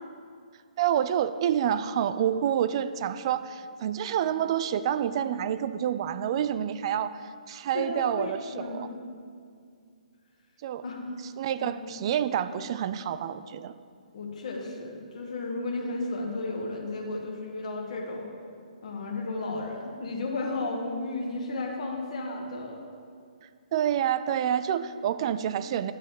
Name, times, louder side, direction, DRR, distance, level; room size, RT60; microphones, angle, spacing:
voice 1, 0.8-7.2 7.5-8.9 10.6-10.8 11.4-13.7 23.7-25.9, right 9 dB, 40° right, 13 dB, 0.3 m, -28 dB
voice 2, 7.7-8.9 10.8-11.0 11.6-11.7 14.1-18.3 18.8-22.8, left 2 dB, 55° left, 0 dB, 1.4 m, -33 dB
8.9 x 4.1 x 7.2 m, 2.2 s
figure-of-eight pair, 135°, 4 cm